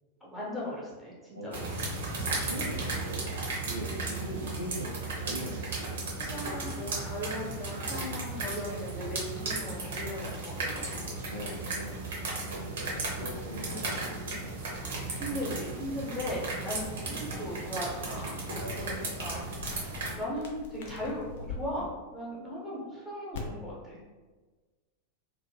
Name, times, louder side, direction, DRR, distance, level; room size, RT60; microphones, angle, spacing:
voice 1, 0.2-1.9 6.2-11.0 12.5-12.8 15.1-24.0, equal, 5° left, -7 dB, 1.0 m, -38 dB
sound 1, 1.5-20.1, right 3 dB, 60° right, 0.8 m, -35 dB
voice 2, 2.4-3.3 3.6-6.3 11.2-11.9 12.5-14.6 18.6-18.9, equal, 90° right, -2 dB, 0.4 m, -41 dB
sound 2, 12.9-21.6 23.3-23.4, left 5 dB, 55° left, 0.5 m, -48 dB
2.7 x 2.1 x 3.3 m, 1.3 s
figure-of-eight pair, 90°, 0 cm